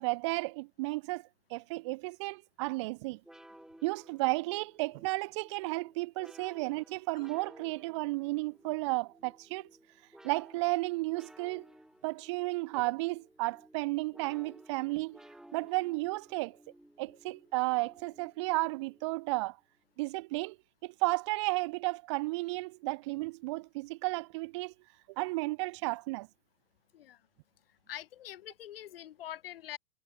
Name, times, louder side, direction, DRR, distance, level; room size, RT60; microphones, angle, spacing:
voice 1, 0.0-3.2 3.8-9.7 10.2-11.7 12.0-15.2 15.5-16.6 17.0-19.6 20.0-20.6 20.8-24.7 25.2-26.3, right 23 dB, 30° right, 0.4 m, -33 dB
sound 1, 3.2-19.5, right 1 dB, ahead, 3.0 m, -57 dB
voice 2, 27.9-29.8, left 12 dB, 75° left, 1.5 m, -44 dB
hypercardioid pair, 140°, 29 cm